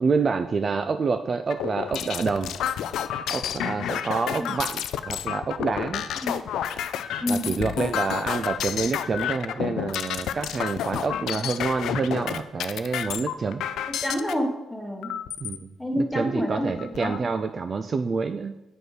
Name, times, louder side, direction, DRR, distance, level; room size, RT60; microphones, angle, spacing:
voice 1, 0.0-2.5 3.3-6.0 7.3-13.6 15.4-15.7 16.0-18.6, right 4 dB, 35° right, 9 dB, 0.3 m, -27 dB
sound 1, 1.5-14.3 15.0-15.6 16.1-16.2 16.5-17.2, left 10 dB, 85° left, 0.4 m, -30 dB
voice 2, 7.2-7.5 11.2-11.5 14.0-15.1 15.8-17.2, equal, 5° left, 3 dB, 1.1 m, -28 dB
7.7 x 5.1 x 4.8 m, 0.97 s
cardioid pair, 135°, 0 cm